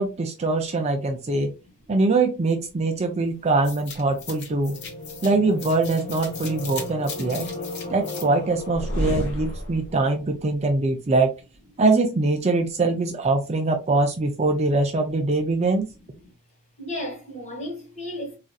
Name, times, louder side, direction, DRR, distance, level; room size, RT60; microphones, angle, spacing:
voice 1, 0.0-1.5 1.9-4.8 5.2-7.5 7.9-11.3 11.8-15.9, right 3 dB, 30° right, 0.4 m, -23 dB
voice 2, 1.3-1.7 4.8-5.1 6.6-6.7 7.4-7.9 9.9-10.0 10.6-10.7 11.0-11.1 15.1-15.2 16.1-16.3 16.8-18.4, left 1 dB, 30° left, 1.3 m, -37 dB
sound 1, 3.6-10.0, left 2 dB, 50° left, 0.9 m, -32 dB
3.9 x 2.4 x 2.2 m
head